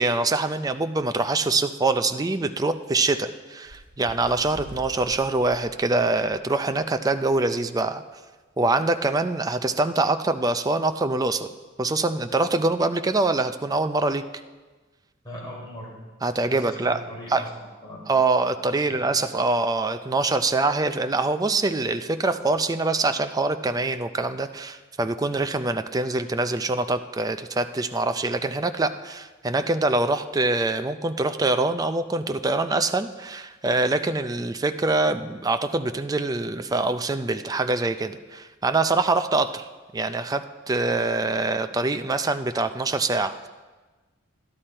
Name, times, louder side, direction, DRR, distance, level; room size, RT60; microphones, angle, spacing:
voice 1, 0.0-8.0 8.6-11.5 11.8-14.2 16.2-17.0 17.3-17.4 18.1-39.7 39.9-43.5, right 2 dB, 20° right, 9 dB, 0.4 m, -24 dB
Bird, 3.6-6.8 7.3-7.5 7.7-8.0 8.8-8.9, equal, 70° right, 1.8 m, -46 dB
voice 2, 15.2-16.0 16.5-18.1 18.7-19.0, equal, 20° left, -4 dB, 3.9 m, -39 dB
12.0 x 11.5 x 4.4 m, 1.3 s
head